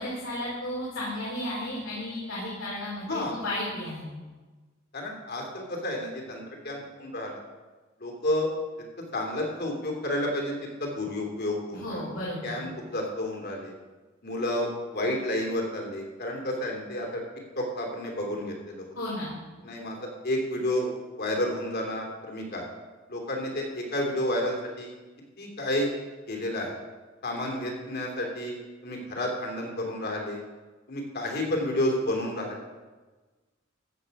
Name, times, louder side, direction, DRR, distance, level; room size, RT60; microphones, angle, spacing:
voice 1, 0.0-4.1 11.7-12.8 18.9-19.3, left 1 dB, 75° left, -6 dB, 3.8 m, -34 dB
voice 2, 4.9-7.4 8.0-8.5 9.1-12.0 12.4-13.7 14.2-17.2 17.6-18.9 19.6-20.9 21.2-22.7 23.1-24.9 25.4-25.9 26.3-26.7 27.2-30.4 30.9-32.6, left 1 dB, 50° left, 1 dB, 2.9 m, -31 dB
14.0 x 8.0 x 5.4 m, 1.3 s
head